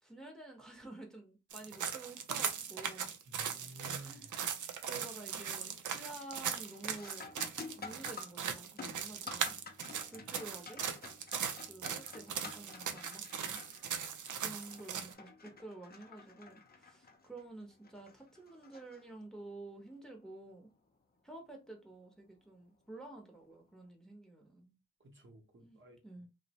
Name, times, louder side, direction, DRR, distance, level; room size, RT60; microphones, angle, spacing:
voice 1, 0.0-3.1 4.0-4.3 4.8-7.3 7.7-9.6 10.1-10.8 11.7-13.9 14.4-20.7 21.2-24.8 25.6-25.8 26.0-26.3, right 2 dB, ahead, 0.8 m, -50 dB
sound 1, 1.5-15.1, right 7 dB, 75° right, 0.5 m, -39 dB
voice 2, 3.3-4.3 9.9-10.3 25.0-26.0, right 2 dB, 40° right, 0.8 m, -53 dB
sound 2, 4.4-4.8 5.2-5.7 6.0-19.5 22.0-22.1 22.9-23.2, left 4 dB, 30° left, 0.6 m, -51 dB
2.6 x 2.1 x 2.9 m
cardioid pair, 60°, 30 cm